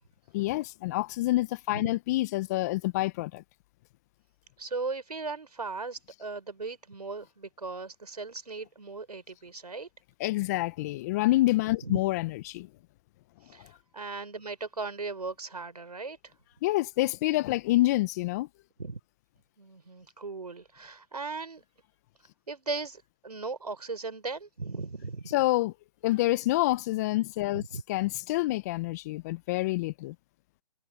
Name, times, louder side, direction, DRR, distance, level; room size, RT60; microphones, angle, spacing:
voice 1, 0.3-3.4 10.2-12.7 16.6-18.5 25.3-25.7 26.0-27.6 27.9-30.1, left 18 dB, 25° left, 0.9 m, -27 dB
voice 2, 4.6-9.9 11.8-12.0 13.5-16.2 18.8-19.0 19.6-21.6 22.5-25.3 27.5-27.8, right 4 dB, 85° right, 4.4 m, -37 dB
hypercardioid pair, 145°, 20 cm